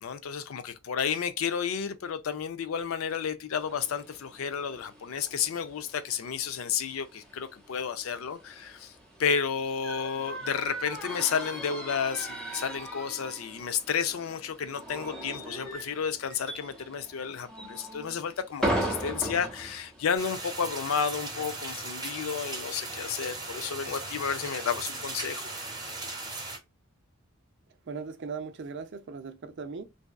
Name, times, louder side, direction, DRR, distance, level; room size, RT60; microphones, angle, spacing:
voice 1, 0.0-8.9 9.2-25.5, left 7 dB, 75° left, 0.4 m, -32 dB
sound 1, 3.6-20.7, right 1 dB, 5° left, 0.8 m, -39 dB
sound 2, 20.2-26.6, right 2 dB, 20° right, 1.0 m, -38 dB
voice 2, 27.9-29.8, right 5 dB, 60° right, 0.5 m, -38 dB
2.6 x 2.3 x 2.2 m
head